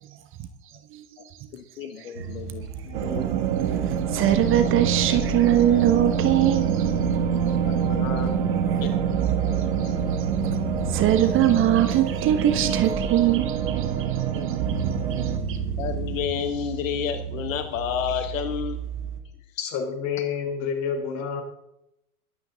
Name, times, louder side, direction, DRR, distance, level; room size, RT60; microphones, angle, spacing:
voice 1, 1.5-3.3 7.5-8.4 8.8-9.2 9.5-10.1 14.3-14.5 15.8-18.8, left 9 dB, 55° left, 1.6 m, -31 dB
sound 1, 2.1-19.2, right 6 dB, 80° right, 2.7 m, -34 dB
sound 2, 2.9-15.4, right 7 dB, 50° right, 2.0 m, -26 dB
voice 2, 4.1-6.9 9.6-9.7 10.9-14.5 15.1-15.6, right 12 dB, 25° right, 1.1 m, -22 dB
voice 3, 19.6-21.4, left 6 dB, 35° left, 4.0 m, -28 dB
22.0 x 9.0 x 3.9 m
hypercardioid pair, 110°, 46 cm